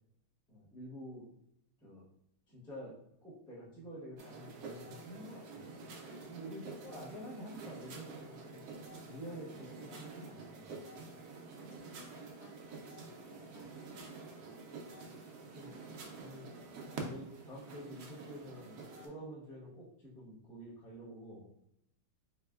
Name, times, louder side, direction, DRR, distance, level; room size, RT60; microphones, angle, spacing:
voice 1, 0.5-1.3 1.8-2.0 2.5-2.9 3.2-5.7 6.2-8.6 9.1-11.0 15.5-15.7 16.2-16.5 16.8-21.5, equal, 5° left, -6 dB, 0.3 m, -48 dB
sound 1, 4.2-19.1, right 3 dB, 75° right, 0.8 m, -48 dB
voice 2, 11.7-14.1 16.1-16.3 16.5-16.8, left 4 dB, 70° left, 0 dB, 1.5 m, -61 dB
4.0 x 3.5 x 2.3 m, 0.76 s
omnidirectional pair, 2.2 m